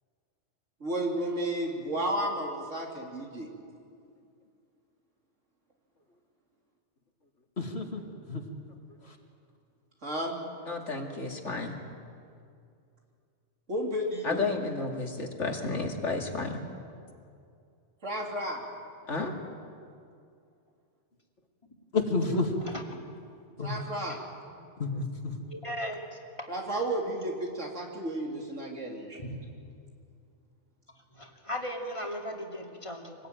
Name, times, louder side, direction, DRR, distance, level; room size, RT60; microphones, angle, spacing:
voice 1, 0.8-3.5 10.0-10.4 13.7-14.5 18.0-18.6 23.6-24.2 26.5-29.3, right 1 dB, 90° right, -1 dB, 3.8 m, -32 dB
voice 2, 7.6-8.0 8.3-8.4 21.9-22.7 23.6-23.7 24.8-25.3, left 3 dB, 60° left, 2 dB, 2.6 m, -29 dB
voice 3, 10.7-11.7 14.2-16.6 19.1-19.3, left 3 dB, 75° left, 2 dB, 2.7 m, -32 dB
voice 4, 25.5-26.5 29.2-29.3 31.1-33.2, equal, 25° left, 1 dB, 2.6 m, -37 dB
25.0 x 19.0 x 9.2 m, 2.4 s
omnidirectional pair, 1.2 m